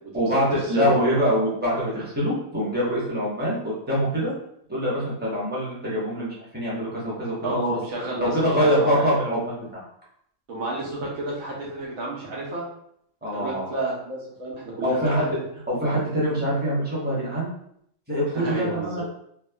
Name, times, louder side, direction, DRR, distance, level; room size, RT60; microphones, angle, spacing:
voice 1, 0.1-4.3 4.7-7.8 8.2-9.8 13.2-13.7 14.8-15.2 15.7-17.5 18.1-19.0, equal, 10° right, -7 dB, 0.7 m, -24 dB
voice 2, 7.4-8.3 8.6-9.1 10.5-12.6 13.3-15.2 18.3-19.0, right 2 dB, 90° right, -4 dB, 1.3 m, -30 dB
3.4 x 2.1 x 2.2 m, 0.70 s
omnidirectional pair, 1.4 m